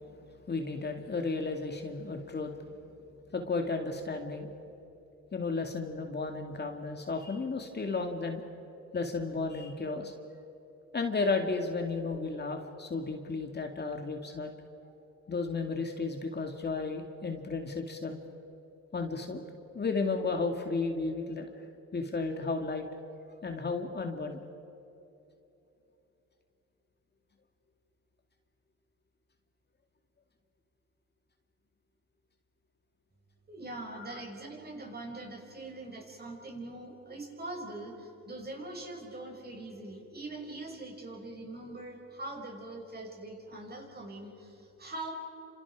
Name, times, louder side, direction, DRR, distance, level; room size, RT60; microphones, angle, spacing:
voice 1, 0.5-2.5 3.3-4.5 5.3-8.4 8.9-10.1 10.9-14.5 15.3-18.2 18.9-19.4 19.7-22.9 23.4-24.4 34.0-34.2, left 3 dB, 35° left, 3 dB, 2.4 m, -33 dB
voice 2, 33.5-45.1, right 2 dB, 30° right, 1 dB, 6.3 m, -42 dB
29.5 x 27.0 x 4.9 m, 2.9 s
cardioid pair, 90°, 30 cm